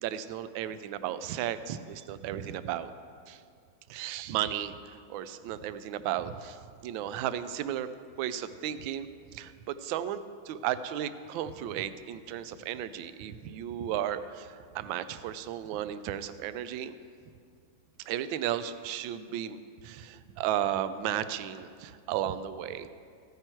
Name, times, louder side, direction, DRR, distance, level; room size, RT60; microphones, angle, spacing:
voice 1, 0.0-2.9 3.3-3.4 3.9-7.9 8.2-9.1 9.3-16.9 18.0-22.9, right 11 dB, 75° right, 13 dB, 1.3 m, -34 dB
15.0 x 8.9 x 4.5 m, 2.2 s
omnidirectional pair, 2.2 m